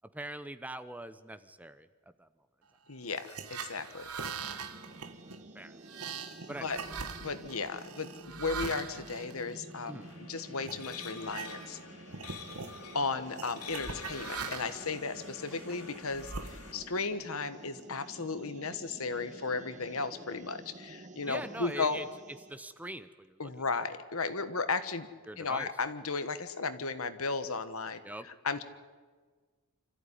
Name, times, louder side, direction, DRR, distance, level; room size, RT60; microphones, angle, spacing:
voice 1, 0.1-1.9 2.2-2.3 4.1-4.2 5.5-5.8 6.5-6.7 9.9-10.1 15.7-15.8 21.3-22.0 22.5-23.4 25.3-25.7 28.0-28.3, right 1 dB, 5° right, 12 dB, 0.7 m, -42 dB
voice 2, 2.9-4.1 6.6-6.8 7.2-11.8 12.9-22.0 23.4-25.1 25.4-28.6, left 4 dB, 70° left, 11 dB, 1.4 m, -35 dB
sound 1, 3.1-10.1 10.6-10.8 11.2-11.8 12.1-12.8 13.4-14.9 15.5-17.0, right 5 dB, 85° right, 1.7 m, -42 dB
sound 2, 4.3-22.6, right 2 dB, 35° right, 1.2 m, -51 dB
sound 3, 10.0-16.7, left 5 dB, 85° left, 3.8 m, -48 dB
26.0 x 14.5 x 10.0 m, 1.5 s
head